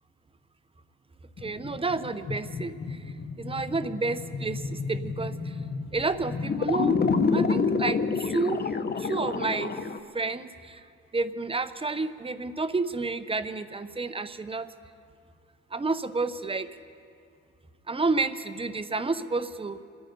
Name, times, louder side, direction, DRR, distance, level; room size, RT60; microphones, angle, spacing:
sound 1, 1.4-10.0, left 4 dB, 30° left, 0.9 m, -29 dB
voice 1, 1.4-5.6 5.9-7.0 7.3-8.6 9.0-9.8 10.1-10.8 11.1-14.7 15.7-16.7 17.9-19.8, right 3 dB, 20° right, 12 dB, 0.8 m, -30 dB
26.5 x 9.7 x 5.3 m, 2.4 s
cardioid pair, 90°, 30 cm